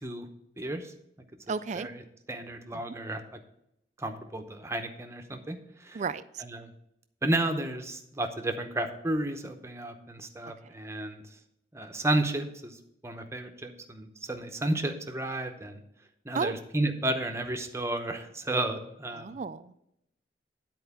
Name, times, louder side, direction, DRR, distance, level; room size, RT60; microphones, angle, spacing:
voice 1, 0.6-0.9 1.7-2.0 2.3-3.2 4.0-6.0 6.4-6.7 7.2-11.2 11.7-12.8 13.0-15.8 16.2-19.3, right 1 dB, 15° right, 6 dB, 0.8 m, -32 dB
voice 2, 1.5-1.9 2.7-2.8 5.9-6.4 16.3-16.6 19.1-19.8, right 5 dB, 40° right, 15 dB, 0.3 m, -33 dB
10.0 x 4.5 x 7.1 m, 0.81 s
head